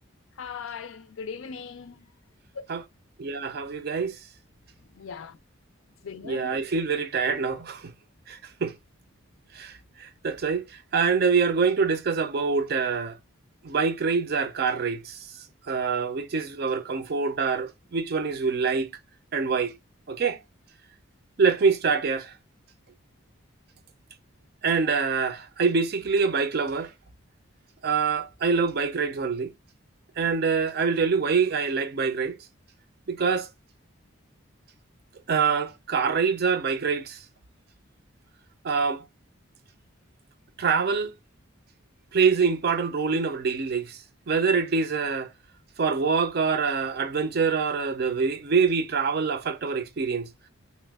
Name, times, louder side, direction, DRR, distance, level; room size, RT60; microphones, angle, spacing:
voice 1, 0.4-2.0 4.9-5.3 6.0-6.6, left 6 dB, 80° left, 0.4 m, -39 dB
voice 2, 3.2-4.1 6.2-7.8 8.3-8.7 9.6-9.7 10.2-10.6 10.9-13.1 13.6-15.0 15.7-18.9 19.3-19.7 20.1-20.4 21.4-22.3 24.6-26.9 27.8-29.5 30.2-32.4 33.1-33.5 35.3-37.2 38.6-39.0 40.6-41.1 42.1-44.0 44.3-45.3 45.8-50.3, right 5 dB, 50° right, 0.4 m, -25 dB
2.9 x 2.2 x 3.4 m
head